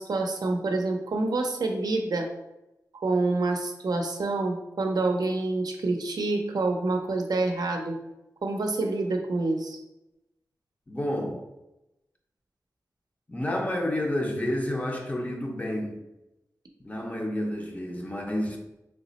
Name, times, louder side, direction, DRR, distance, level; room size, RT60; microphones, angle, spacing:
voice 1, 0.0-2.3 2.9-8.0 8.4-9.8, right 2 dB, 80° right, 3 dB, 0.5 m, -27 dB
voice 2, 10.9-11.4 13.3-16.0 16.8-18.6, left 1 dB, 20° left, 1 dB, 0.5 m, -30 dB
3.2 x 2.0 x 3.9 m, 0.92 s
wide cardioid pair, 105°, 7 cm